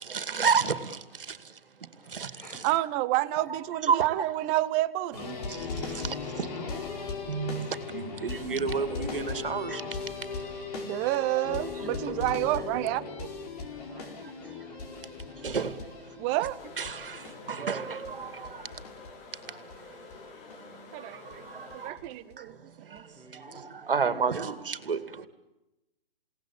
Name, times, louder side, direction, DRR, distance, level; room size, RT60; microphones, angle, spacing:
voice 1, 0.1-1.0 1.3-1.4 2.1-2.3 3.5-4.1 6.4-6.5 7.3-9.8 11.2-11.3 14.4-14.6 15.4-15.7 16.8-17.2 17.5-18.5 21.5-21.9 23.3-25.3, right 6 dB, 65° right, 2.5 m, -30 dB
voice 2, 1.6-2.6 6.3-6.7 12.2-13.0 13.8-14.9 17.4-18.2 23.1-23.8, right 1 dB, 5° left, 6.7 m, -50 dB
voice 3, 2.6-5.4 10.8-13.0 16.2-16.7 20.9-21.5 21.7-22.6 22.9-23.0, right 16 dB, 20° right, 0.8 m, -29 dB
sound 1, 5.1-19.8 20.1-20.2 20.5-20.6 21.3-21.4 21.7-22.3 23.0-23.1, left 4 dB, 40° left, 4.8 m, -38 dB
sound 2, 11.2-12.7 13.6-14.6 18.5-19.5 20.1-21.4, left 4 dB, 60° left, 6.8 m, -56 dB
sound 3, 16.6-21.9, left 4 dB, 25° left, 2.9 m, -49 dB
29.5 x 18.0 x 8.7 m
figure-of-eight pair, 130°, 29 cm